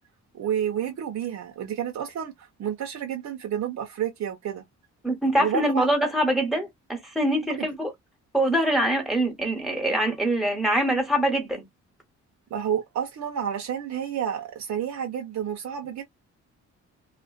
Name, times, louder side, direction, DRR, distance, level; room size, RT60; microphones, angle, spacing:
voice 1, 0.3-4.6 5.4-5.9 7.4-7.7 12.5-16.0, right 9 dB, 65° right, 0.8 m, -30 dB
voice 2, 5.0-7.9 8.3-11.6, right 1 dB, ahead, 1.2 m, -24 dB
2.4 x 2.2 x 2.3 m
cardioid pair, 90°, 30 cm